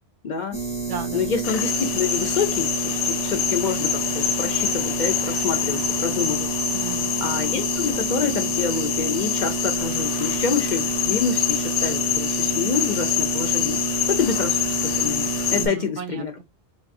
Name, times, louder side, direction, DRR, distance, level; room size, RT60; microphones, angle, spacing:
voice 1, 0.2-0.6 1.1-6.5 7.2-13.8 14.1-16.3, left 6 dB, 55° left, 0.6 m, -27 dB
sound 1, 0.5-15.7, right 5 dB, 5° left, 0.8 m, -29 dB
voice 2, 0.9-1.3 6.7-7.1 15.6-16.4, right 7 dB, 85° right, 1.0 m, -34 dB
sound 2, 1.4-15.7, left 10 dB, 90° left, 0.9 m, -26 dB
3.8 x 2.3 x 2.5 m
omnidirectional pair, 1.2 m